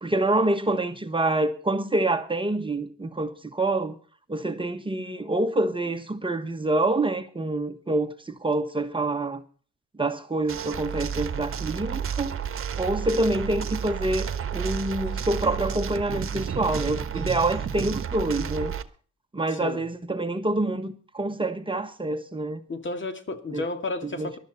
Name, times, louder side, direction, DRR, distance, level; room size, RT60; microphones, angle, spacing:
voice 1, 0.0-3.9 4.3-9.4 10.0-12.3 12.8-18.7 19.3-22.6 23.5-23.6 24.0-24.3, right 2 dB, 15° right, 1.4 m, -26 dB
sound 1, 10.5-18.8, right 7 dB, 45° right, 1.4 m, -31 dB
voice 2, 22.7-24.4, left 2 dB, 40° left, 2.3 m, -32 dB
19.0 x 12.5 x 4.2 m
cardioid pair, 90°, 30 cm